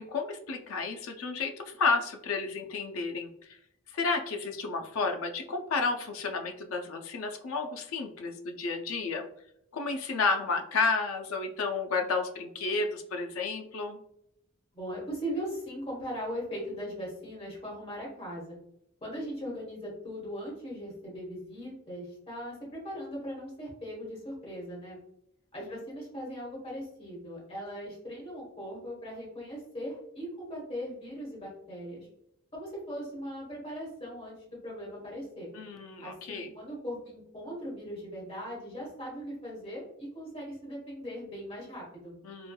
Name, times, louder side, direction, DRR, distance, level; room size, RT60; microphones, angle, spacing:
voice 1, 0.0-3.6 3.9-9.3 9.7-14.0 35.5-36.5 42.2-42.5, left 4 dB, 90° left, 4 dB, 0.4 m, -31 dB
voice 2, 14.7-18.6 19.0-25.0 25.5-32.1 32.5-35.5 36.0-42.2, equal, 30° left, -4 dB, 1.2 m, -39 dB
3.1 x 2.2 x 2.2 m, 0.76 s
head